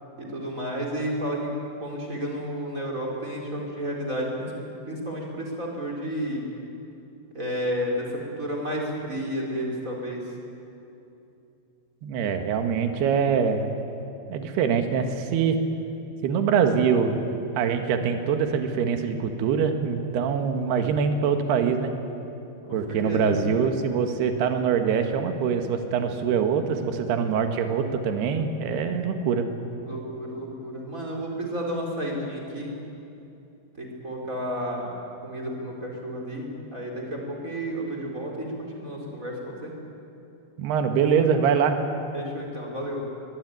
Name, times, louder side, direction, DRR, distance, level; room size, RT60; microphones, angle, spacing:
voice 1, 0.2-1.5 1.8-4.5 4.9-6.4 7.3-10.2 22.7-23.6 29.8-32.7 33.8-36.5 36.7-39.7 42.1-43.0, equal, 20° right, 0 dB, 4.1 m, -31 dB
voice 2, 12.0-13.7 14.3-15.6 16.2-17.2 17.6-21.9 22.7-29.5 40.6-41.8, right 6 dB, 65° right, 6 dB, 3.5 m, -24 dB
23.0 x 22.5 x 9.5 m, 2.8 s
omnidirectional pair, 5.2 m